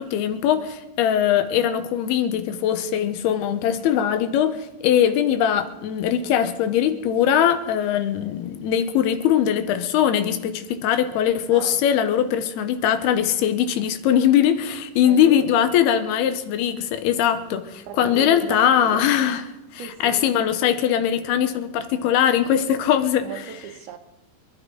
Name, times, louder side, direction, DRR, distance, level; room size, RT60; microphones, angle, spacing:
voice 1, 0.0-19.4 19.7-23.3, left 9 dB, 80° left, 2.9 m, -21 dB
voice 2, 11.5-11.8 15.0-15.7 17.9-19.5 19.8-20.3 22.5-22.7 23.2-24.0, right 8 dB, 75° right, 2.9 m, -37 dB
26.5 x 11.5 x 3.8 m
omnidirectional pair, 4.6 m